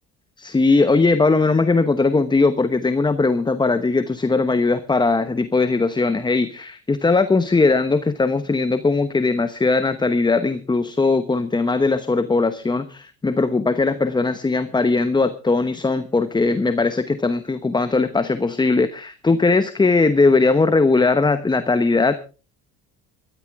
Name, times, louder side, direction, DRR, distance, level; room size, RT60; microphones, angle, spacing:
voice 1, 0.4-22.1, left 3 dB, 15° left, 11 dB, 0.9 m, -19 dB
19.0 x 13.5 x 3.6 m, 0.34 s
supercardioid pair, 95°, 31 cm